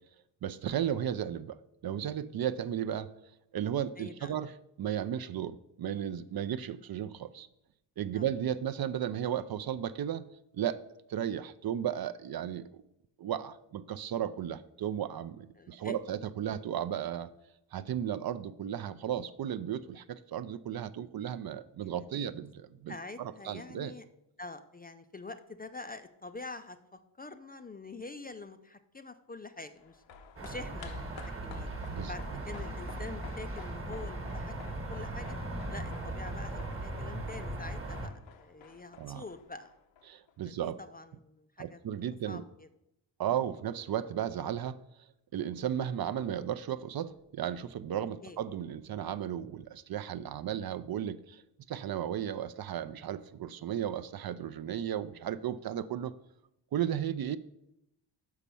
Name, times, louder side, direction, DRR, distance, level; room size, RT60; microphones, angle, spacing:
voice 1, 0.4-3.1 3.5-7.5 8.0-10.8 11.1-12.8 13.2-17.3 17.7-23.9 31.9-32.4 39.0-39.2 40.1-40.8 41.6-42.4 43.2-44.8 45.3-51.4 51.7-56.1 56.7-57.4, right 10 dB, 55° right, 14 dB, 0.5 m, -35 dB
voice 2, 4.0-4.3 8.1-8.3 15.6-16.0 22.1-22.3 22.9-24.0 24.4-30.0 30.4-31.7 32.1-35.3 35.7-39.7 40.4-41.8 42.3-42.7 48.2-48.4, left 3 dB, 20° left, 9 dB, 0.3 m, -46 dB
sound 1, 29.8-40.3 40.6-40.7, left 6 dB, 85° left, 0.9 m, -52 dB
sound 2, 30.4-38.1, right 1 dB, 30° right, 1.2 m, -38 dB
6.1 x 5.6 x 6.8 m, 0.83 s
wide cardioid pair, 130°, 45 cm